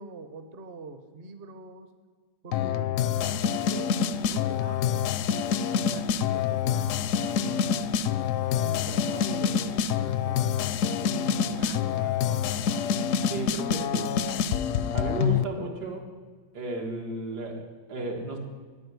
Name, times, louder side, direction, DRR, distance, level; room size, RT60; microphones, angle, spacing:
voice 1, 0.0-1.9 2.4-5.1 5.8-7.9 8.6-13.0 13.7-13.9 15.2-15.7, right 3 dB, 45° right, 9 dB, 1.0 m, -44 dB
sound 1, 2.5-15.4, left 7 dB, 70° left, 0.7 m, -26 dB
voice 2, 13.3-14.1 14.9-16.0 16.5-18.4, right 3 dB, 75° right, 1 dB, 2.5 m, -34 dB
10.0 x 9.1 x 9.5 m, 1.5 s
omnidirectional pair, 1.7 m